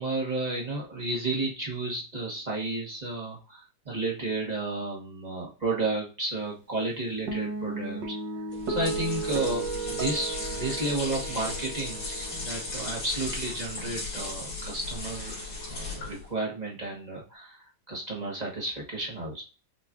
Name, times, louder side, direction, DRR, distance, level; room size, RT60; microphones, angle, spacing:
voice 1, 0.0-8.1 8.7-15.3 15.6-19.4, right 2 dB, 30° right, -3 dB, 0.9 m, -32 dB
Guitar, 7.3-13.8, right 3 dB, 70° right, 1.6 m, -35 dB
sound 1, 8.5-16.3, left 3 dB, 65° left, 2.6 m, -36 dB
6.4 x 2.4 x 2.4 m, 0.33 s
omnidirectional pair, 2.1 m